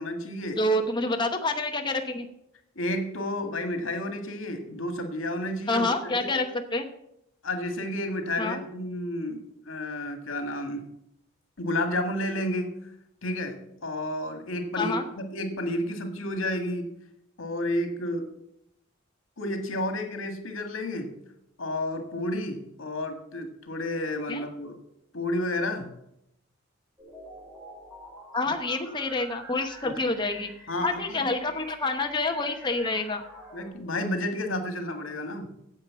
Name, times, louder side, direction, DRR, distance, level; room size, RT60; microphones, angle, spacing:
voice 1, 0.0-0.6 2.8-6.3 7.4-10.8 11.6-12.7 13.2-16.9 17.4-18.3 19.4-21.1 21.6-24.7 25.1-25.9 28.5-28.6 29.8-29.9 30.7-31.3 33.5-35.5, left 1 dB, 85° left, 6 dB, 1.8 m, -31 dB
voice 2, 0.6-2.3 5.7-6.9 8.4-8.6 14.7-15.0 24.3-24.5 28.3-30.5 30.8-33.2, left 2 dB, 25° left, 4 dB, 0.9 m, -27 dB
sound 1, 27.0-33.7, left 1 dB, 5° right, 4.8 m, -47 dB
9.6 x 7.8 x 7.5 m, 0.80 s
head